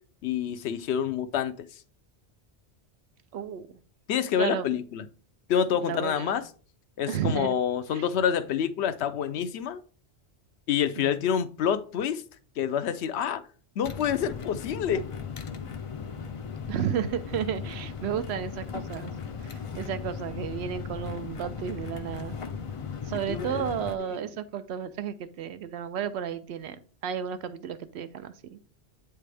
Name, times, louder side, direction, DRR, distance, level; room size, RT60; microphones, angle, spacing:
voice 1, 0.2-1.8 4.1-5.1 5.5-6.4 7.0-9.8 10.7-12.2 12.6-13.4 13.8-15.0 23.3-23.7 24.1-24.2, left 8 dB, 80° left, 0.8 m, -27 dB
voice 2, 3.3-3.7 4.4-4.7 5.8-6.3 7.1-7.5 7.9-8.1 11.0-11.1 16.7-19.1 19.4-22.4 23.0-28.6, right 8 dB, 80° right, 0.8 m, -33 dB
sound 1, 13.8-24.0, left 6 dB, 45° left, 0.4 m, -37 dB
8.2 x 3.4 x 3.3 m
omnidirectional pair, 1.1 m